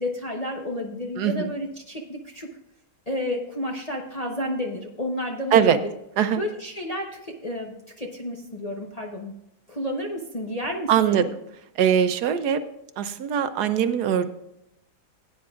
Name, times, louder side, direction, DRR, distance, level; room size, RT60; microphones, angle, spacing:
voice 1, 0.0-2.5 3.1-5.9 6.3-9.3 9.7-11.2, left 1 dB, 30° left, 0 dB, 0.9 m, -31 dB
voice 2, 1.2-1.5 5.5-5.8 6.2-6.4 10.9-11.2 11.8-12.6 13.0-14.3, right 8 dB, 75° right, 10 dB, 1.2 m, -21 dB
17.0 x 9.4 x 2.4 m, 0.83 s
omnidirectional pair, 1.8 m